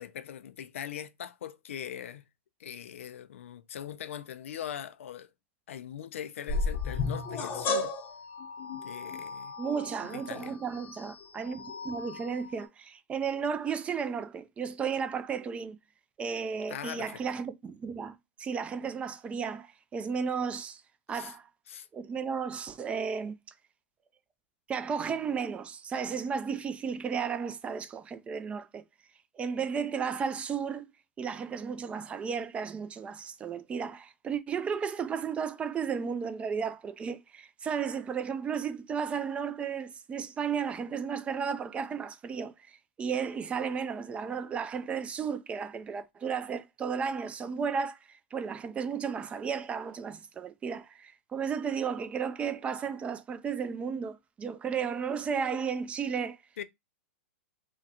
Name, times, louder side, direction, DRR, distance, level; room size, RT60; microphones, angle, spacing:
voice 1, 0.0-2.2 2.6-5.3 5.7-7.9 8.7-9.5 10.1-10.5 16.7-17.2 21.1-21.3 21.7-21.9 56.6-56.7, left 9 dB, 80° left, 0.4 m, -41 dB
sound 1, 6.5-12.6, left 3 dB, 30° left, 0.7 m, -35 dB
voice 2, 9.6-15.8 16.2-20.8 21.1-21.5 21.9-23.4 24.7-28.8 29.4-30.9 31.2-56.4, right 6 dB, 15° right, 0.3 m, -34 dB
3.6 x 2.1 x 2.8 m
hypercardioid pair, 130°, 7 cm